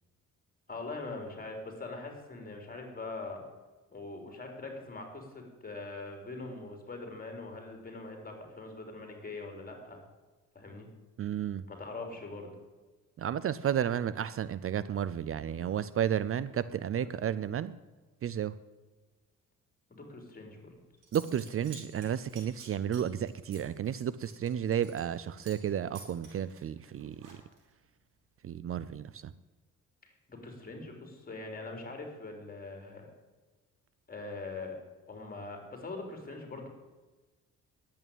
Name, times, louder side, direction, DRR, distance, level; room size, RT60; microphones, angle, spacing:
voice 1, 0.7-3.4 3.9-10.0 10.5-10.9 11.7-12.5 17.0-17.1 19.9-20.8 30.0-33.1 34.1-34.8 35.1-36.7, left 3 dB, 30° left, 3 dB, 3.9 m, -42 dB
voice 2, 11.2-11.6 13.2-17.8 18.2-18.5 21.1-27.4 28.4-29.3, right 9 dB, 45° right, 16 dB, 0.5 m, -32 dB
Zipper (clothing) / Coin (dropping), 20.7-20.8 21.0-25.2 25.4-25.7 25.9-27.7, right 4 dB, 85° right, 5.2 m, -52 dB
11.0 x 8.7 x 8.9 m, 1.3 s
cardioid pair, 90°, 30 cm